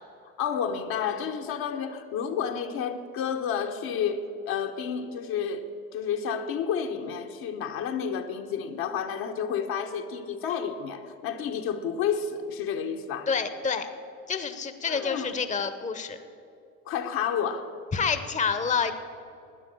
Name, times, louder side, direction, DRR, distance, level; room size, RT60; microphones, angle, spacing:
voice 1, 0.4-5.7 5.9-13.3 14.9-15.3 16.9-17.7, left 7 dB, 60° left, 1.3 m, -30 dB
voice 2, 13.3-13.9 14.3-16.2 17.9-18.9, left 5 dB, 20° left, 0.9 m, -28 dB
12.0 x 9.8 x 7.7 m
hypercardioid pair, 65°, 40 cm